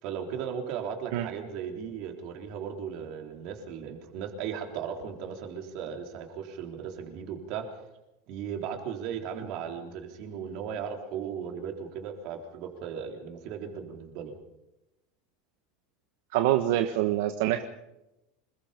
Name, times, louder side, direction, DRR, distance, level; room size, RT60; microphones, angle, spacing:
voice 1, 0.0-7.7 8.3-14.4, right 7 dB, 45° right, 3 dB, 3.8 m, -36 dB
voice 2, 16.3-17.6, right 13 dB, 60° right, 7 dB, 1.4 m, -25 dB
27.0 x 21.5 x 5.3 m, 0.93 s
supercardioid pair, 175°, 0 cm